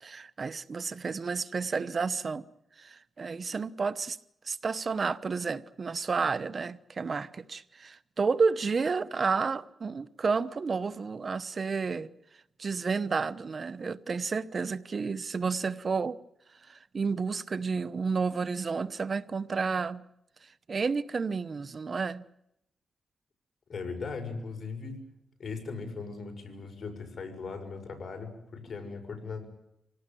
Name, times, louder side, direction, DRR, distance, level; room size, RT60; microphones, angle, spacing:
voice 1, 0.0-2.5 2.8-4.2 4.4-12.1 12.6-16.2 16.6-20.0 20.4-22.2, right 4 dB, 45° right, 14 dB, 0.9 m, -31 dB
voice 2, 23.7-25.0 25.4-29.4, left 4 dB, 55° left, 5 dB, 6.5 m, -38 dB
26.0 x 18.0 x 9.2 m, 0.81 s
cardioid pair, 90°, 0 cm